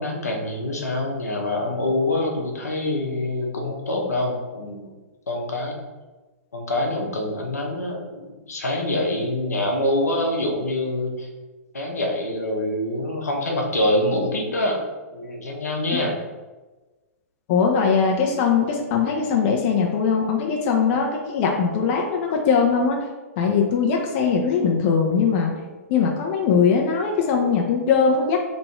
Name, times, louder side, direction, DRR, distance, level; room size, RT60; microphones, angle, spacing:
voice 1, 0.0-4.9 5.3-5.8 6.5-11.3 11.7-14.9 15.1-16.2, left 1 dB, 85° left, 0 dB, 0.8 m, -25 dB
voice 2, 17.5-23.0 23.4-25.5 25.9-28.4, left 6 dB, 45° left, 1 dB, 0.6 m, -20 dB
3.1 x 2.6 x 4.4 m, 1.2 s
hypercardioid pair, 115°, 8 cm